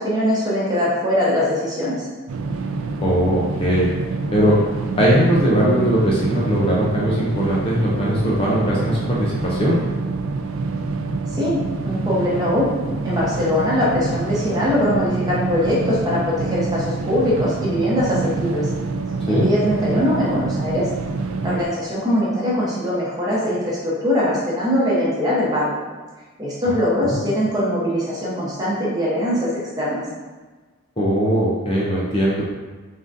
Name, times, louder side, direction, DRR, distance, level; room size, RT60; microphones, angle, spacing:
voice 1, 0.0-2.1 11.3-12.7 13.0-18.7 19.3-20.8 21.4-25.8 26.4-29.5 29.8-30.0, left 1 dB, 15° right, -7 dB, 0.9 m, -21 dB
sound 1, 2.3-21.6, right 3 dB, 70° right, 0.3 m, -26 dB
voice 2, 3.0-3.9 4.3-4.6 5.0-9.8 19.3-19.5 27.0-27.2 31.0-32.4, equal, 25° left, -6 dB, 0.5 m, -19 dB
3.8 x 3.6 x 2.6 m, 1.3 s
head